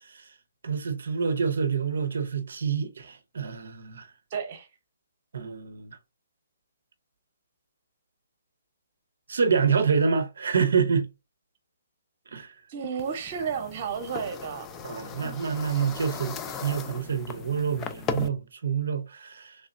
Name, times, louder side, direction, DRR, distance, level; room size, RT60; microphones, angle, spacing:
voice 1, 0.6-4.1 5.3-5.9 9.3-11.1 12.3-12.6 14.8-19.6, right 6 dB, 65° right, 0.6 m, -27 dB
voice 2, 4.3-4.7 12.7-14.8, right 6 dB, 40° right, 0.9 m, -32 dB
sound 1, 13.0-18.3, left 6 dB, 20° left, 0.4 m, -37 dB
3.2 x 2.8 x 2.5 m
figure-of-eight pair, 135°, 0 cm